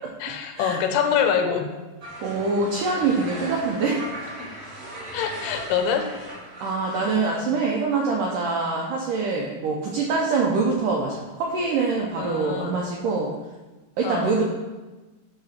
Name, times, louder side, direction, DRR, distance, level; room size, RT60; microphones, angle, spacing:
voice 1, 0.2-1.7 4.4-4.5 5.1-6.1 12.2-12.8 14.0-14.4, left 7 dB, 80° left, 6 dB, 2.6 m, -25 dB
sound 1, 2.0-7.1, right 1 dB, 45° right, 2.4 m, -38 dB
voice 2, 2.2-4.0 6.6-13.3 14.0-14.5, right 4 dB, 80° right, -2 dB, 1.9 m, -24 dB
9.5 x 3.9 x 5.8 m, 1.2 s
omnidirectional pair, 4.9 m